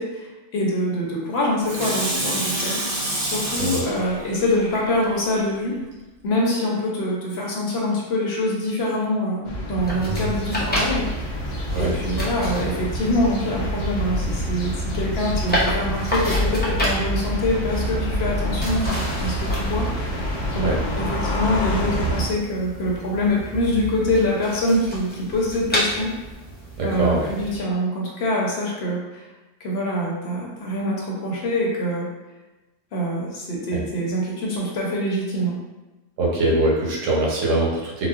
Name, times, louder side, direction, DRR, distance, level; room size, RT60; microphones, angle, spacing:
voice 1, 0.0-5.8 6.2-11.4 11.8-19.9 20.5-20.7 21.0-26.1 26.8-29.3 29.6-32.1 32.9-35.6, left 1 dB, 65° left, -3 dB, 0.9 m, -25 dB
Water tap faucet / Sink (filling or washing), 1.6-5.4 5.9-6.0, right 1 dB, 55° right, 0.8 m, -28 dB
sound 1, 9.4-22.2, equal, 85° left, 1.1 m, -27 dB
sound 2, 9.8-27.6, equal, 15° left, 0.4 m, -31 dB
voice 2, 26.8-27.3 33.7-33.8 36.2-38.1, right 2 dB, 85° right, -3 dB, 1.1 m, -22 dB
4.0 x 2.0 x 2.4 m, 1.1 s
omnidirectional pair, 1.2 m